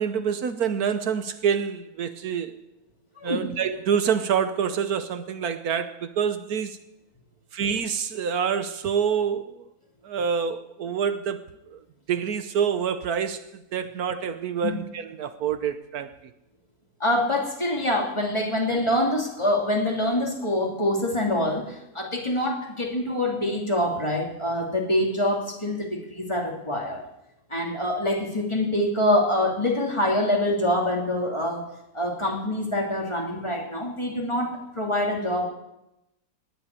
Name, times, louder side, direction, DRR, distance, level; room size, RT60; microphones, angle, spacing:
voice 1, 0.0-2.6 3.2-6.8 7.5-9.6 10.0-11.4 11.7-11.8 12.1-16.1, right 7 dB, 75° right, 1.4 m, -27 dB
voice 2, 17.0-27.0 27.5-31.7 31.9-35.5, left 1 dB, 20° left, 2.9 m, -25 dB
18.5 x 7.8 x 9.6 m
omnidirectional pair, 1.6 m